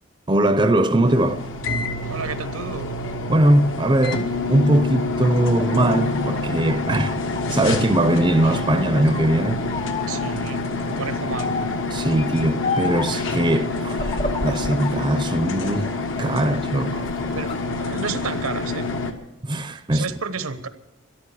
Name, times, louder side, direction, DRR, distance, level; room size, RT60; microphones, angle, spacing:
voice 1, 0.3-1.4 3.3-7.2 7.5-9.6 11.9-14.1 14.4-15.9 16.2-17.0 19.4-20.0, right 1 dB, 20° right, 0.6 m, -20 dB
sound 1, 1.1-19.1, left 3 dB, 60° left, 1.4 m, -27 dB
voice 2, 2.1-2.9 10.1-11.5 17.3-18.9 19.9-20.7, right 4 dB, 85° right, 1.1 m, -31 dB
sound 2, 4.8-8.0 8.4-9.3 9.7-10.3 11.3-11.9 12.6-13.2 13.9-15.0 15.4-16.4 16.9-17.6, left 3 dB, 25° left, 0.8 m, -31 dB
13.0 x 11.0 x 8.5 m
head